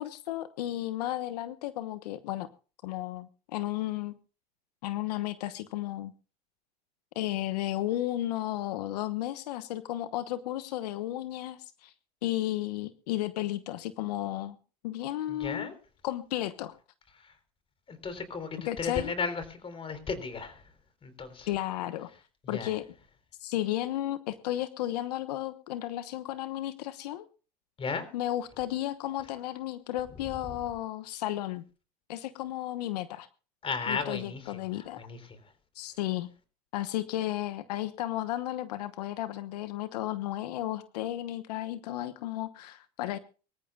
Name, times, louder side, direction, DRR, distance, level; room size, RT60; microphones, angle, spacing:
voice 1, 0.0-2.5 2.8-4.1 4.8-6.1 7.1-11.9 12.2-14.6 14.8-15.7 16.0-16.8 18.7-19.1 21.5-22.1 22.5-22.8 23.4-27.3 28.1-31.6 32.1-33.3 33.9-35.0 35.7-36.3 36.7-43.2, left 14 dB, 85° left, 12 dB, 1.1 m, -33 dB
voice 2, 15.3-15.8 17.1-17.4 17.9-20.7 21.0-21.5 22.4-22.8 27.8-28.1 30.2-30.6 33.6-35.5, left 5 dB, 25° left, 11 dB, 3.9 m, -36 dB
24.5 x 14.0 x 2.4 m, 0.36 s
supercardioid pair, 105°, 20 cm